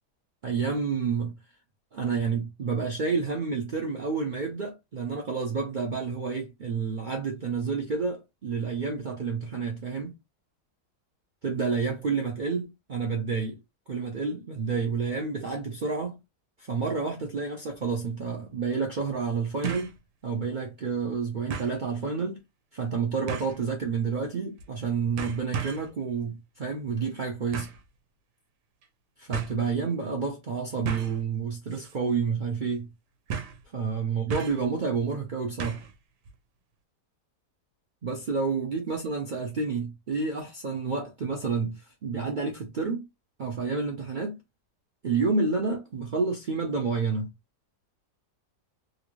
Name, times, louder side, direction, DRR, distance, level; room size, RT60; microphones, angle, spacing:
voice 1, 0.4-1.3 1.9-10.2 11.4-13.6 13.9-16.2 16.6-19.9 20.2-22.4 22.7-27.7 29.2-32.9 33.7-35.8 38.0-43.1 43.4-44.4 45.0-47.3, right 5 dB, 70° right, 0.4 m, -29 dB
sound 1, 17.7-17.8 19.6-20.0 20.4-20.5 21.5-21.8 23.3-23.6 24.6-24.8 25.2-25.9 27.5-27.8 28.8-28.9 29.3-29.5 30.8-31.2 31.7-32.0 32.2-32.3 33.3-33.6 34.3-34.7 35.6-35.9 36.2-36.3, right 7 dB, 85° right, 1.2 m, -34 dB
3.1 x 2.5 x 3.0 m
omnidirectional pair, 1.8 m